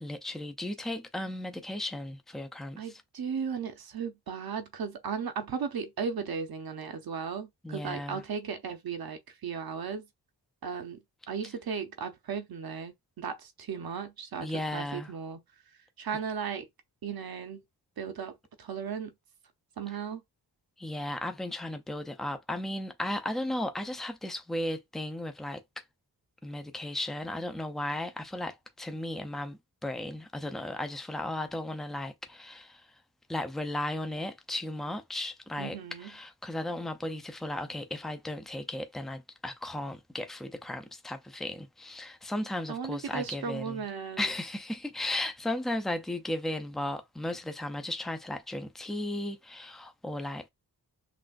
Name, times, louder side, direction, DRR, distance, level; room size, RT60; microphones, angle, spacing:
voice 1, 0.0-3.0 7.6-8.2 14.4-15.1 20.8-25.8 26.4-32.9 33.3-43.8 44.2-50.5, left 1 dB, ahead, 0.4 m, -35 dB
voice 2, 2.8-10.1 10.6-11.0 11.3-14.5 14.7-15.4 16.0-16.7 17.0-17.6 18.0-19.1 19.8-20.2 35.6-36.1 42.7-44.3, right 6 dB, 65° right, 0.8 m, -36 dB
6.0 x 2.5 x 2.4 m
wide cardioid pair, 165°, 40 cm